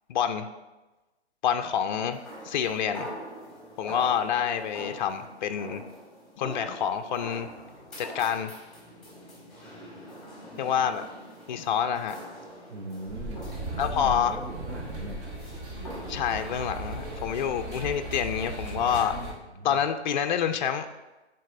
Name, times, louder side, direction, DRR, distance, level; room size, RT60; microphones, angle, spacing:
voice 1, 0.1-0.5 1.4-2.2 2.4-3.1 3.8-5.8 6.4-7.5 8.0-8.5 10.6-11.1 11.5-12.2 13.8-14.4 16.1-19.2 19.6-20.9, left 8 dB, 45° left, 7 dB, 0.4 m, -27 dB
sound 1, 2.1-17.6, equal, ahead, 2.0 m, -44 dB
voice 2, 12.7-13.5 13.9-15.3 19.5-19.8, right 2 dB, 85° right, 0 dB, 0.8 m, -40 dB
sound 2, 13.1-19.3, right 1 dB, 35° right, 1.2 m, -37 dB
10.0 x 4.0 x 2.5 m, 1.1 s
figure-of-eight pair, 125°, 34 cm